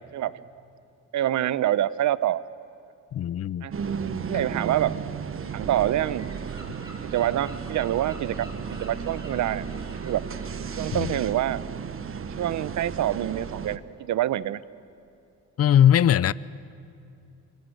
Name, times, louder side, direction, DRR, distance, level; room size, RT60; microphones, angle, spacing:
voice 1, 1.1-2.4 3.6-3.7 4.3-5.0 5.5-6.3 7.1-9.6 10.0-10.3 10.8-11.6 12.4-14.6, right 12 dB, 70° right, 0.9 m, -26 dB
voice 2, 3.1-3.7 4.3-4.4 10.9-11.2 15.6-16.3, left 10 dB, 55° left, 0.7 m, -20 dB
sound 1, 3.7-13.8, right 6 dB, 45° right, 1.4 m, -34 dB
Gull seagull, 5.4-11.2, equal, 15° right, 5.9 m, -48 dB
27.5 x 25.5 x 8.1 m
cardioid pair, 90°, 30 cm